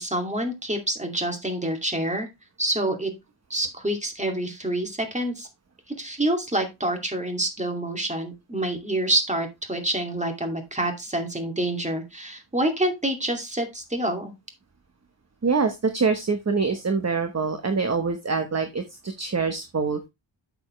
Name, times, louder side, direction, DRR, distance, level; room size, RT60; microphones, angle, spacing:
voice 1, 0.0-2.3 2.6-3.1 3.5-5.5 6.0-14.3, right 1 dB, 15° right, 4 dB, 2.4 m, -27 dB
voice 2, 15.4-20.1, right 4 dB, 35° right, 7 dB, 1.1 m, -25 dB
8.6 x 7.2 x 3.1 m, 0.22 s
wide cardioid pair, 110°, 47 cm